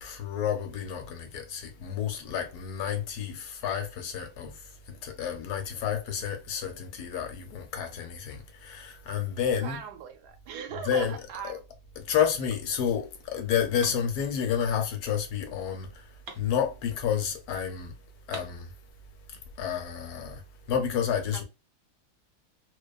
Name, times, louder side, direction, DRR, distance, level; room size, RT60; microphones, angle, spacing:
voice 1, 0.0-9.8 10.9-11.6 12.0-16.1 16.4-17.9 18.3-18.7 19.6-20.4 20.7-21.4, left 8 dB, 75° left, 1.1 m, -30 dB
voice 2, 9.6-11.6 21.3-21.4, right 8 dB, 90° right, 1.1 m, -39 dB
sound 1, 13.1-17.4 17.7-17.8 18.0-19.3, right 4 dB, 60° right, 0.8 m, -49 dB
2.5 x 2.2 x 2.3 m
omnidirectional pair, 1.7 m